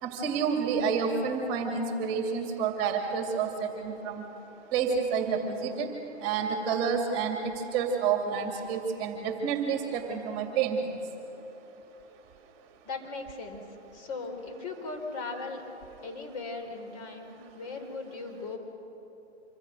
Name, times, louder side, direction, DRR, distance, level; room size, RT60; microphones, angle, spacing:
voice 1, 0.0-4.2 4.7-5.9 6.2-7.4 7.7-10.9, right 6 dB, 30° right, 3 dB, 2.7 m, -29 dB
voice 2, 12.8-13.6 13.9-15.6 16.0-18.6, left 3 dB, 35° left, 3 dB, 4.2 m, -38 dB
26.5 x 25.0 x 6.4 m, 3.0 s
hypercardioid pair, 140°, 34 cm